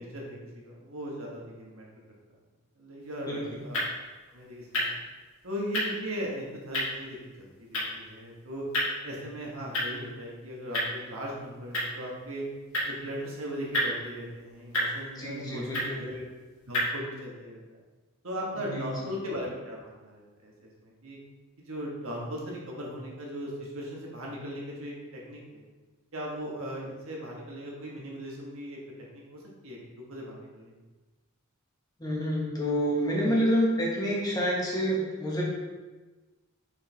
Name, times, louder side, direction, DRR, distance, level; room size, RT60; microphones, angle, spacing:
voice 1, 0.0-1.8 2.8-3.8 4.3-5.0 5.4-8.6 9.0-12.4 12.8-16.2 16.7-17.6 18.2-21.2 21.6-25.6 26.1-28.8 29.1-29.8 30.1-30.7, equal, 70° right, -3 dB, 1.5 m, -38 dB
sound 1, 3.0-16.9, equal, 75° left, 2.0 m, -35 dB
voice 2, 3.3-3.6 15.2-16.0 18.6-18.9 32.0-35.4, equal, 20° left, -5 dB, 1.3 m, -28 dB
6.5 x 4.6 x 3.4 m, 1.2 s
head